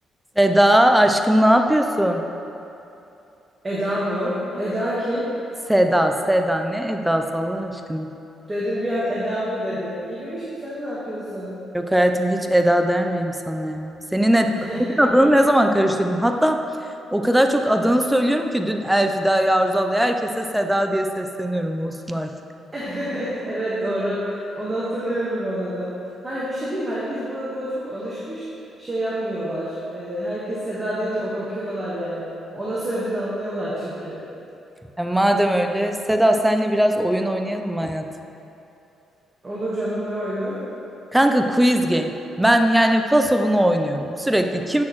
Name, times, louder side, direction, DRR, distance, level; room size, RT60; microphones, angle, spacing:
voice 1, 0.4-2.2 5.7-8.1 11.7-14.6 15.0-16.6 17.1-22.3 35.0-38.0 41.1-42.1 42.4-44.8, equal, 5° right, 5 dB, 0.5 m, -19 dB
voice 2, 3.6-5.3 8.5-11.5 14.5-15.0 22.7-25.9 26.2-28.5 28.8-32.3 32.5-34.2 39.4-40.6, equal, 25° right, -8 dB, 1.4 m, -27 dB
9.4 x 6.2 x 3.1 m, 2.9 s
cardioid pair, 90°, 0 cm